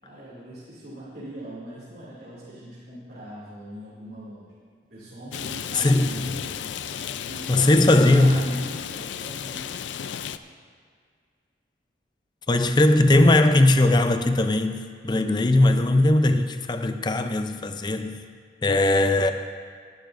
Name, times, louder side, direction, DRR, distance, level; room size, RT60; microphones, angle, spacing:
voice 1, 0.0-4.5 4.9-6.4 7.3-9.7 12.7-13.1, right 1 dB, 60° right, 2.6 m, -40 dB
Rain, 5.3-10.4, left 8 dB, 90° left, 0.4 m, -34 dB
voice 2, 5.7-6.1 7.5-8.4 12.5-18.2 18.6-19.3, left 2 dB, 25° left, 0.5 m, -19 dB
18.0 x 11.5 x 2.6 m
head